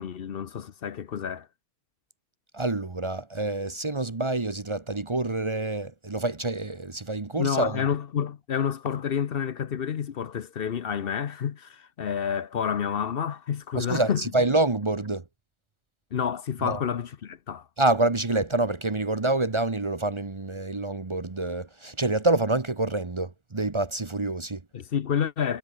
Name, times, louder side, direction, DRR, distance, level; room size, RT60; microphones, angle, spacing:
voice 1, 0.0-1.5 7.4-14.2 16.1-17.7 24.7-25.6, left 8 dB, 60° left, 1.0 m, -29 dB
voice 2, 2.5-7.8 13.7-15.2 16.6-16.8 17.8-24.6, right 2 dB, 30° right, 1.0 m, -27 dB
omnidirectional pair, 1.1 m